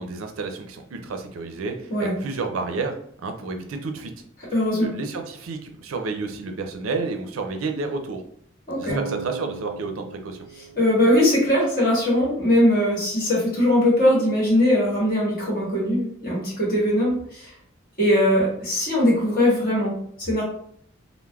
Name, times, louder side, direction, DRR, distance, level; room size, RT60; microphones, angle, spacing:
voice 1, 0.0-2.9 3.2-4.1 4.8-8.2 8.8-10.4, right 3 dB, 75° right, 5 dB, 0.4 m, -30 dB
voice 2, 4.5-4.9 8.7-9.0 10.7-17.5 18.0-20.4, left 1 dB, 45° left, -5 dB, 1.3 m, -20 dB
Bass guitar, 8.9-11.9, right 2 dB, 85° left, 0.6 m, -37 dB
3.2 x 2.0 x 2.2 m, 0.66 s
head